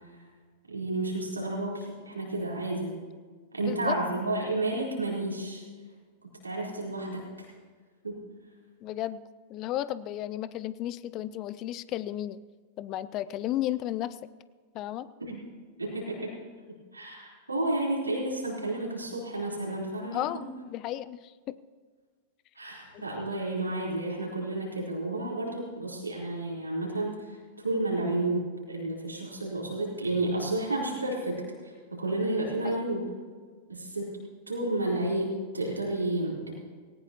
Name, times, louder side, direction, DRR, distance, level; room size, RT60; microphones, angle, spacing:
voice 1, 0.7-3.0 3.5-5.6 6.4-7.5 8.0-8.2 15.3-15.4 15.8-16.4 16.9-20.5 22.6-33.1 33.7-36.5, right 2 dB, 85° right, -3 dB, 4.0 m, -31 dB
voice 2, 3.6-4.0 8.8-9.2 9.5-12.4 12.8-14.2 14.7-15.1 20.1-21.6 22.9-23.0 23.3-23.4 32.6-32.8, left 13 dB, 40° left, 17 dB, 0.5 m, -33 dB
18.5 x 18.0 x 3.0 m, 1.6 s
figure-of-eight pair, 90°, 0 cm